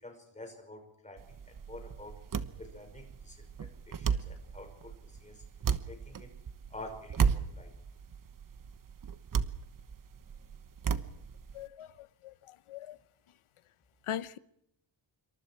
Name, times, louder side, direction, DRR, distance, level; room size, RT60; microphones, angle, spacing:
voice 1, 0.0-2.2 2.6-5.4 5.9-6.3 6.7-7.7, left 2 dB, 15° left, 5.6 m, -49 dB
sound 1, 1.2-11.7, right 6 dB, 40° right, 1.2 m, -35 dB
voice 2, 11.5-13.0 14.1-14.4, left 10 dB, 85° left, 1.1 m, -41 dB
27.0 x 24.5 x 4.7 m
wide cardioid pair, 175°, 49 cm